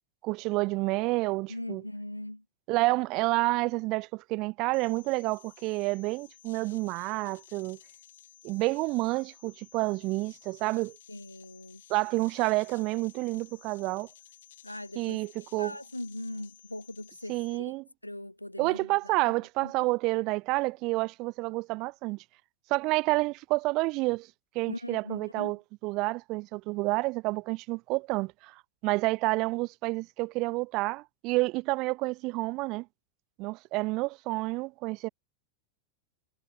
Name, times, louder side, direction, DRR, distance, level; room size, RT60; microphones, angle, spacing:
voice 1, 0.2-1.8 2.7-7.8 8.4-10.9 11.9-14.1 15.0-15.7 17.3-17.8 18.6-22.2 22.7-24.3 24.5-25.6 25.8-28.5 28.8-32.9 33.4-35.1, right 23 dB, 40° right, 0.5 m, -29 dB
voice 2, 1.5-2.4 11.1-11.8 14.6-15.2 15.6-17.7 18.0-19.2 19.6-19.7 24.7-25.6, left 1 dB, 85° left, 0.9 m, -40 dB
sound 1, 4.7-17.6, left 11 dB, 60° left, 2.2 m, -56 dB
figure-of-eight pair, 90°, 0 cm